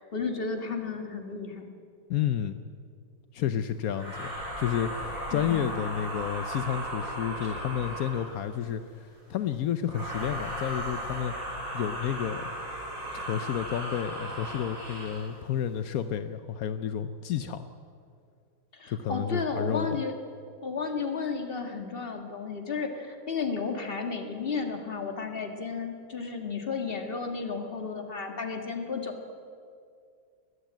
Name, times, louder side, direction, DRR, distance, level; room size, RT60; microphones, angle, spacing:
voice 1, 0.0-1.7 5.3-5.7 7.4-7.6 18.7-20.1 20.6-29.3, left 4 dB, 30° left, 5 dB, 1.8 m, -33 dB
voice 2, 2.1-2.6 3.3-11.3 11.7-12.5 13.1-17.7 18.9-19.9, left 9 dB, 70° left, 11 dB, 0.8 m, -31 dB
sound 1, 3.9-8.5 9.8-15.3, equal, 65° right, 6.0 m, -36 dB
21.0 x 14.5 x 9.2 m, 2.3 s
omnidirectional pair, 2.3 m